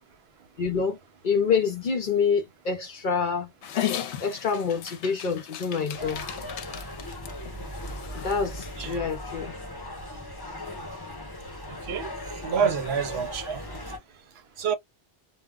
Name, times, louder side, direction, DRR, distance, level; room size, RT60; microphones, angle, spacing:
voice 1, 0.6-1.0 1.2-3.5 4.2-6.2 8.1-9.5 13.1-13.2, left 5 dB, 55° left, 0.6 m, -27 dB
Dog, 3.6-9.0, left 11 dB, 80° left, 0.9 m, -36 dB
sound 1, 5.9-14.0, left 1 dB, 20° left, 0.9 m, -38 dB
voice 2, 11.7-12.1 12.4-13.6 14.6-14.7, right 7 dB, 65° right, 0.8 m, -28 dB
2.2 x 2.1 x 3.6 m
omnidirectional pair, 1.2 m